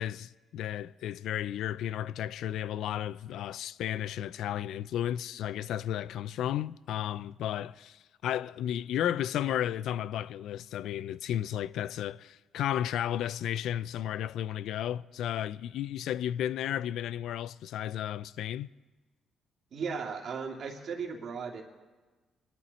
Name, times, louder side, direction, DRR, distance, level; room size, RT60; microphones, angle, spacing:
voice 1, 0.0-18.7, left 11 dB, 80° left, 0.3 m, -33 dB
voice 2, 19.7-21.6, right 5 dB, 60° right, 2.5 m, -36 dB
22.5 x 12.0 x 4.2 m
cardioid pair, 90°, 0 cm